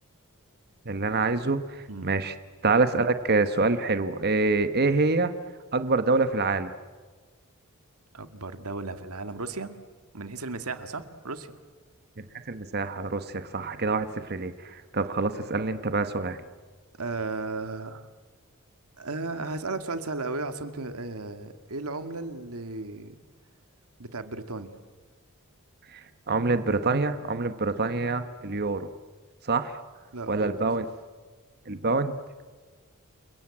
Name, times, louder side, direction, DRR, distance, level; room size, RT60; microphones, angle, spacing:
voice 1, 0.8-2.3 2.6-5.3 5.7-6.7 12.2-16.4 25.9-28.9 29.4-29.8 30.3-30.8 31.6-32.2, right 3 dB, 50° right, 10 dB, 1.3 m, -26 dB
voice 2, 8.1-9.7 10.1-11.5 17.0-18.1 19.0-23.2 24.0-24.7 30.1-30.5, right 3 dB, 85° right, 9 dB, 1.9 m, -35 dB
29.5 x 22.5 x 8.8 m, 1.4 s
head